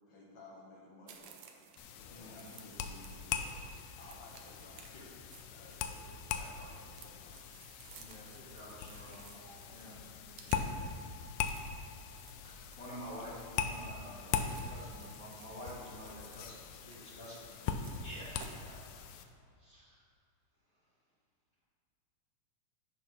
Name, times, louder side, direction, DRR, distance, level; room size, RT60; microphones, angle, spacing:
voice 1, 0.1-1.5 1.9-3.6 4.0-5.2 5.5-7.4, left 2 dB, 60° left, -5 dB, 2.1 m, -56 dB
sound 1, 1.1-18.6, right 6 dB, 85° right, 1.6 m, -58 dB
sound 2, 1.8-19.3, left 7 dB, 80° left, 2.1 m, -41 dB
voice 2, 2.1-2.6 8.0-9.2 9.7-10.0 12.4-19.2 19.6-20.0, equal, 40° left, -9 dB, 1.4 m, -49 dB
voice 3, 9.1-10.9, right 1 dB, 60° right, -8 dB, 1.2 m, -60 dB
14.0 x 5.6 x 3.1 m, 2.4 s
omnidirectional pair, 4.1 m